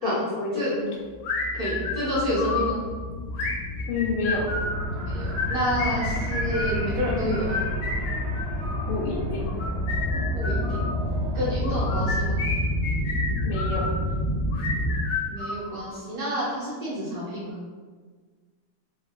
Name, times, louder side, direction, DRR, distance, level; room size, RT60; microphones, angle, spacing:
voice 1, 0.0-0.7 3.9-4.5 8.9-9.5 13.4-13.9, left 3 dB, 90° left, -2 dB, 1.5 m, -28 dB
sound 1, 1.1-15.0, equal, 45° left, 0.5 m, -29 dB
sound 2, 1.2-2.8 3.3-4.8 5.3-6.8 7.3-8.9 9.5-10.9 11.6-13.9 14.5-16.0, left 4 dB, 70° left, 1.0 m, -31 dB
voice 2, 1.6-2.8 5.0-7.6 10.3-10.9 11.3-12.4 15.3-17.6, equal, 55° right, -8 dB, 1.1 m, -29 dB
sound 3, 4.3-11.6, right 2 dB, 80° right, 1.4 m, -39 dB
3.6 x 2.5 x 2.3 m, 1.5 s
omnidirectional pair, 2.4 m